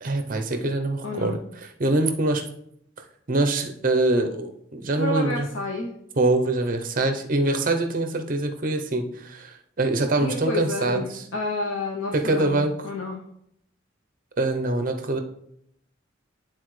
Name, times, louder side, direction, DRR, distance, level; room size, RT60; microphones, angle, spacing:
voice 1, 0.0-2.5 3.3-5.5 6.2-11.2 12.1-12.9 14.4-15.2, right 2 dB, 45° right, 6 dB, 0.7 m, -24 dB
voice 2, 1.0-1.4 5.0-5.9 10.2-13.2, left 2 dB, 75° left, 0 dB, 0.7 m, -30 dB
11.0 x 3.9 x 3.2 m, 0.74 s
head